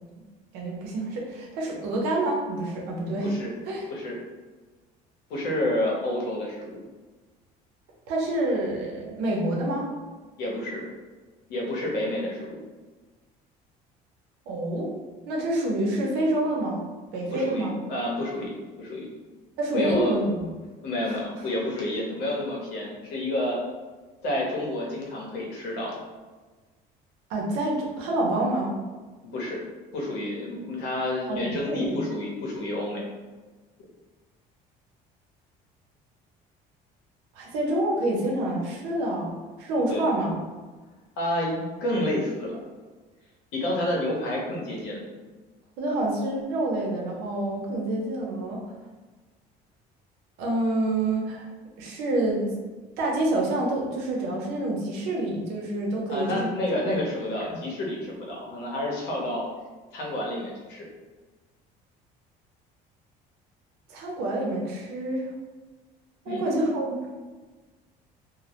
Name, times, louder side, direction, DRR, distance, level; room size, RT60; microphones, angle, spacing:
voice 1, 0.5-3.4 3.7-3.9 8.1-9.9 14.5-14.9 15.3-16.8 17.1-17.8 19.6-20.5 21.0-21.2 27.3-28.8 31.3-32.0 37.3-40.4 45.8-48.6 50.4-51.5 51.8-52.5 53.0-56.5 56.9-57.0 57.5-57.6 63.9-65.3 66.3-67.1, right 1 dB, 85° right, -2 dB, 0.6 m, -27 dB
voice 2, 3.2-3.5 3.9-4.2 5.3-6.8 10.4-10.8 11.5-12.6 17.3-19.1 19.7-20.2 20.8-23.6 24.2-26.0 29.2-29.6 29.9-33.0 39.9-40.1 41.2-42.5 43.5-45.0 56.1-59.4 59.9-60.8 66.3-66.4, left 1 dB, 80° left, -3 dB, 0.8 m, -29 dB
2.1 x 2.1 x 2.8 m, 1.3 s
cardioid pair, 150°, 16 cm